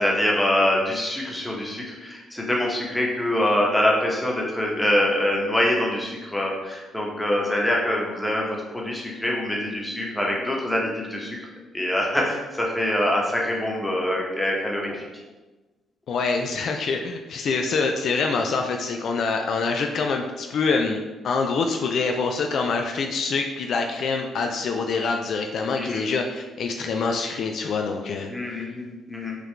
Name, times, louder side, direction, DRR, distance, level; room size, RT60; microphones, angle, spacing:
voice 1, 0.0-11.4 11.7-15.0 25.7-26.0 28.3-29.4, left 1 dB, 5° left, -2 dB, 1.0 m, -24 dB
voice 2, 16.1-28.6, left 4 dB, 65° left, 3 dB, 0.3 m, -25 dB
4.7 x 2.4 x 3.2 m, 1.2 s
cardioid pair, 90°, 0 cm